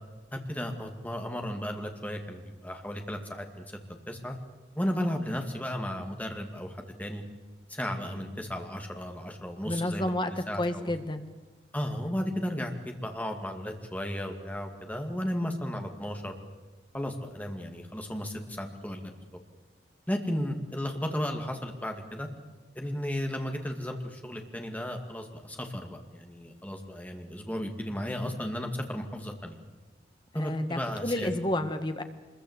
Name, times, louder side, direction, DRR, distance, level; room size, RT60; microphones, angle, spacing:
voice 1, 0.3-4.4 4.8-7.2 7.7-10.9 11.7-16.4 16.9-19.1 20.1-22.3 22.8-29.6 30.3-31.3, equal, 10° left, 3 dB, 2.3 m, -34 dB
voice 2, 9.6-10.3 10.6-11.2 30.3-32.0, left 1 dB, 25° left, 8 dB, 1.5 m, -30 dB
25.0 x 22.0 x 8.2 m, 1.2 s
head